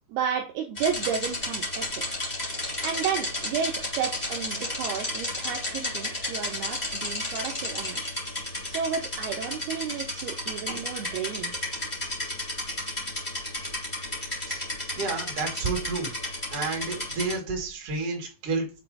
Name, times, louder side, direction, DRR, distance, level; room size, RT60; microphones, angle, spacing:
voice 1, 0.1-2.0 2.8-8.0 8.7-11.6, right 7 dB, 85° right, 1 dB, 2.2 m, -32 dB
sound 1, 0.7-17.3, left 1 dB, 80° left, 0.3 m, -33 dB
voice 2, 15.0-16.1 16.5-18.8, right 4 dB, 50° right, -1 dB, 2.0 m, -30 dB
7.5 x 3.0 x 4.8 m, 0.33 s
omnidirectional pair, 5.4 m